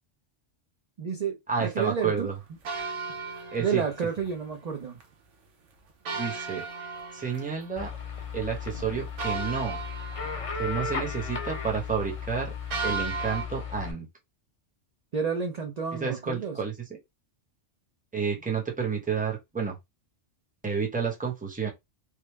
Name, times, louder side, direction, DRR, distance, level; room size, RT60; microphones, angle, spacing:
voice 1, 1.0-2.3 3.6-5.0 15.1-16.6, right 6 dB, 50° right, 0.5 m, -30 dB
voice 2, 1.5-2.3 3.5-3.8 6.1-6.6 7.1-7.9 8.3-9.8 10.5-12.5 12.8-14.1 16.0-16.7 18.1-19.8 20.6-21.7, right 6 dB, 10° right, 0.7 m, -30 dB
sound 1, 2.7-4.3 4.7-4.8 5.0-5.1 6.1-8.0 8.4-8.5 9.2-11.0 12.7-13.5, right 4 dB, 80° right, 1.0 m, -35 dB
sound 2, 7.8-13.9, left 5 dB, 35° left, 0.6 m, -35 dB
3.3 x 2.0 x 3.1 m
omnidirectional pair, 1.2 m